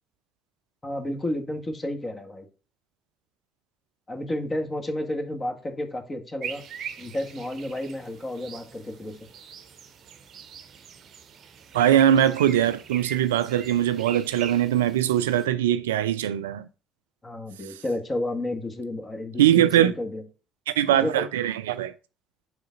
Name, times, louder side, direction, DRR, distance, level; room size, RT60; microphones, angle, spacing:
voice 1, 0.8-2.5 4.1-6.6 7.0-9.3 17.2-20.2 20.9-21.3, left 1 dB, 30° left, 1.5 m, -31 dB
sound 1, 6.4-15.5, right 8 dB, 55° right, 0.6 m, -42 dB
voice 2, 11.7-16.7 19.4-19.9 20.7-21.9, right 11 dB, 85° right, 0.3 m, -21 dB
4.8 x 3.8 x 5.1 m
hypercardioid pair, 55°, 0 cm